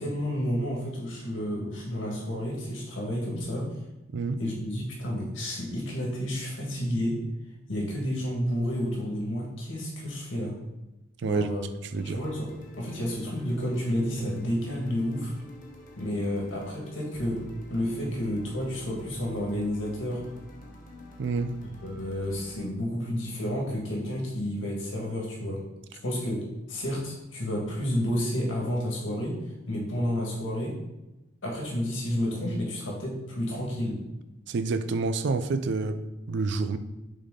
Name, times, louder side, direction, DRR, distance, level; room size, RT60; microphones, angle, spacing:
voice 1, 0.0-3.7 4.4-7.2 7.7-10.6 11.2-11.6 12.0-15.3 16.0-17.4 17.7-20.2 21.8-25.6 26.0-30.8 31.4-34.0, equal, 80° left, 1.7 m, -30 dB
voice 2, 11.2-11.5 11.9-12.2 21.2-21.5 34.5-36.8, right 3 dB, 65° right, 0.4 m, -28 dB
sound 1, 12.0-22.6, equal, 45° left, 1.1 m, -47 dB
6.2 x 4.1 x 3.7 m
head